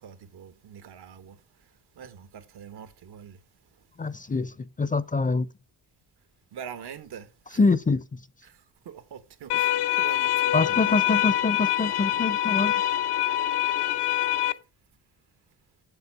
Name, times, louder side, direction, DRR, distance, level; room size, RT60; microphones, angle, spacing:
voice 1, 0.0-1.4 2.0-3.4 6.5-7.6 8.4-8.6 8.8-11.2, right 8 dB, 80° right, 1.2 m, -43 dB
voice 2, 4.0-5.5 7.5-8.0 10.5-12.7, left 3 dB, 20° left, 0.5 m, -25 dB
sound 1, 9.5-14.5, left 13 dB, 85° left, 0.8 m, -25 dB
7.7 x 6.9 x 5.9 m
cardioid pair, 95°, 39 cm